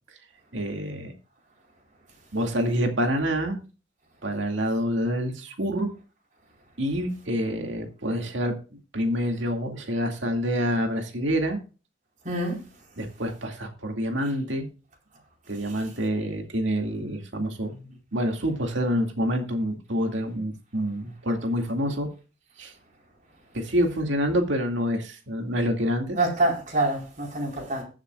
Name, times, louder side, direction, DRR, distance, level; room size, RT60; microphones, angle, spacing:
voice 1, 0.5-1.1 2.3-3.6 4.2-5.9 6.8-11.6 13.0-14.7 15.5-22.1 22.6-22.7 23.5-26.2, equal, 75° right, 2.3 m, -27 dB
voice 2, 12.2-12.6 26.1-27.8, right 2 dB, 45° right, 4.3 m, -26 dB
20.5 x 7.4 x 2.4 m
head